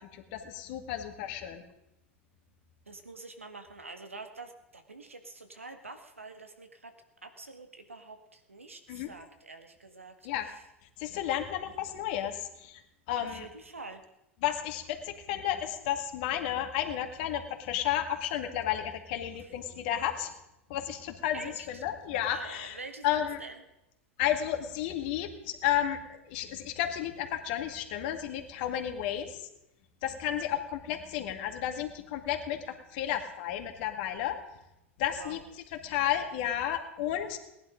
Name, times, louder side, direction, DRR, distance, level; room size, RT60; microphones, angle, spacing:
voice 1, 0.1-1.6 8.9-9.1 10.2-10.5 11.0-12.8 13.1-13.4 14.4-20.3 20.7-22.8 23.0-23.4 24.2-26.0 26.3-29.4 30.0-34.3 35.0-35.4 35.8-37.4, left 11 dB, 50° left, 5 dB, 2.1 m, -32 dB
voice 2, 2.9-6.9 7.2-10.6 13.2-14.0 19.3-19.9 21.3-21.8 22.2-23.6 35.2-35.4, right 3 dB, 85° right, 6 dB, 1.7 m, -46 dB
19.0 x 11.0 x 5.2 m, 0.89 s
figure-of-eight pair, 90°, 7 cm